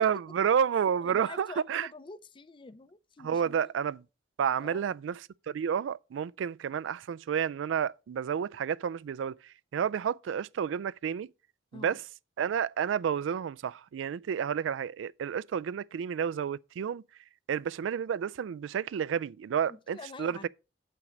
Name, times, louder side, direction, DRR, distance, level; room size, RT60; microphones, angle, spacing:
voice 1, 0.0-1.9 3.2-4.0 4.4-5.2 5.5-9.4 9.7-11.3 11.7-12.0 12.4-17.0 17.5-20.5, right 8 dB, 90° right, 0.3 m, -30 dB
voice 2, 1.0-3.7 4.6-4.8 11.7-12.0 19.7-20.5, left 3 dB, 25° left, 0.5 m, -46 dB
7.8 x 5.9 x 5.1 m
head